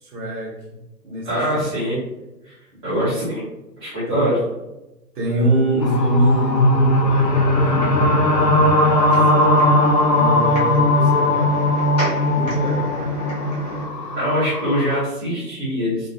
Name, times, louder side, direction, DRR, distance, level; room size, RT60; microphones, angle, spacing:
voice 1, 0.0-0.6 1.0-1.5 2.9-3.1 4.1-4.2 5.1-9.7 10.1-11.7 12.3-13.2, right 1 dB, 65° right, -1 dB, 1.0 m, -25 dB
voice 2, 1.2-2.0 2.4-2.5 2.8-3.4 3.8-4.4 14.2-16.1, equal, 15° right, -12 dB, 0.7 m, -23 dB
sound 1, 5.8-15.0, left 1 dB, 75° left, 0.6 m, -18 dB
sound 2, 7.2-13.8, equal, 25° left, 0.5 m, -32 dB
2.5 x 2.2 x 2.6 m, 0.98 s
figure-of-eight pair, 135°, 50 cm